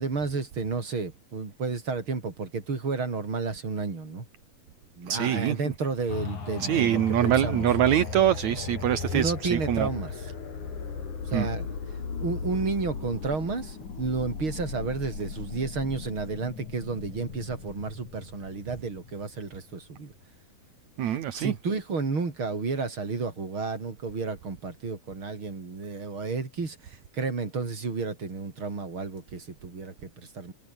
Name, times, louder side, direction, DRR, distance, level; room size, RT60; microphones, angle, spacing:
voice 1, 0.0-4.2 5.0-7.7 9.1-10.3 11.2-11.8 12.2-20.1 21.0-30.5, right 4 dB, 35° right, 5.0 m, -32 dB
voice 2, 5.1-5.6 6.6-9.9 11.3-11.5 21.0-21.5, right 11 dB, 60° right, 2.5 m, -24 dB
sound 1, 6.1-19.7 20.2-20.3, left 5 dB, 55° left, 5.7 m, -36 dB
omnidirectional pair, 4.2 m